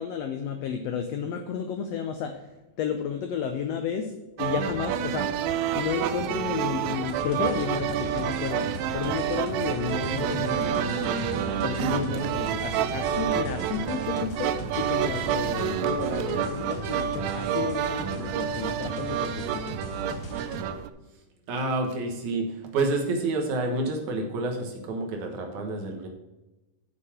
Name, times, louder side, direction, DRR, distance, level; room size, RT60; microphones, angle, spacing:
voice 1, 0.0-2.5 2.8-4.1 4.4-5.3 5.7-19.8, left 7 dB, 85° left, 6 dB, 1.4 m, -32 dB
sound 1, 4.4-20.9, right 9 dB, 85° right, 1.6 m, -29 dB
sound 2, 7.1-20.6, equal, 60° left, 1.7 m, -39 dB
voice 2, 21.5-26.1, right 2 dB, 70° right, 2 dB, 2.6 m, -28 dB
7.2 x 6.6 x 5.9 m, 1.0 s
omnidirectional pair, 3.7 m